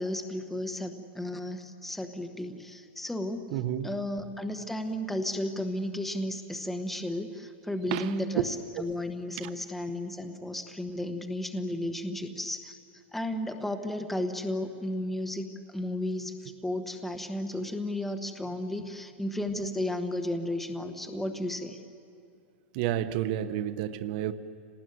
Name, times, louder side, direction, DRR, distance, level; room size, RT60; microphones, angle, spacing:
voice 1, 0.0-3.5 3.8-12.8 13.1-21.8, left 1 dB, 5° left, 6 dB, 1.1 m, -33 dB
voice 2, 3.5-3.9 7.9-8.1 22.7-24.3, right 11 dB, 40° right, 10 dB, 1.0 m, -30 dB
26.5 x 19.0 x 9.5 m, 2.4 s
supercardioid pair, 160°, 7 cm